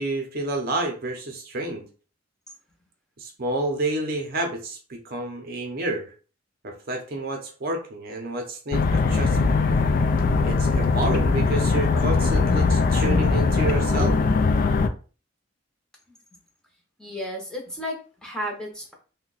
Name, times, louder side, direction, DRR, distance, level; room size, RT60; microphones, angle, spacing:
voice 1, 0.0-1.8 3.2-6.1 6.6-9.6 10.4-14.2, right 2 dB, 50° right, 3 dB, 0.6 m, -29 dB
sound 1, 8.7-14.9, left 4 dB, 45° left, 0.3 m, -21 dB
voice 2, 17.0-18.9, equal, 5° left, -1 dB, 0.7 m, -33 dB
2.7 x 2.2 x 3.9 m, 0.37 s
head